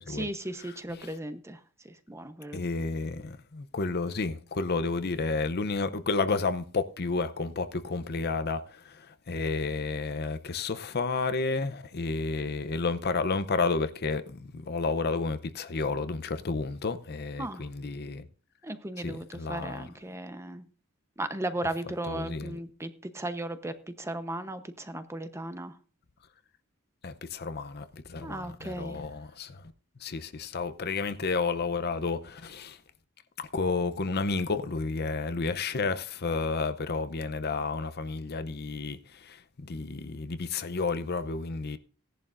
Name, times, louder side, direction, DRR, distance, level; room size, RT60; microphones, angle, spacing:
voice 1, 0.0-1.6 1.8-2.6 17.4-17.7 18.6-20.6 21.2-25.7 28.2-29.0, right 1 dB, 15° right, 0.9 m, -36 dB
voice 2, 0.6-1.1 2.5-18.2 19.0-19.9 22.1-22.6 27.0-29.6 30.0-32.8 33.4-39.0 39.2-39.4 39.6-41.8, left 4 dB, 50° left, 0.7 m, -31 dB
17.0 x 11.0 x 2.6 m
head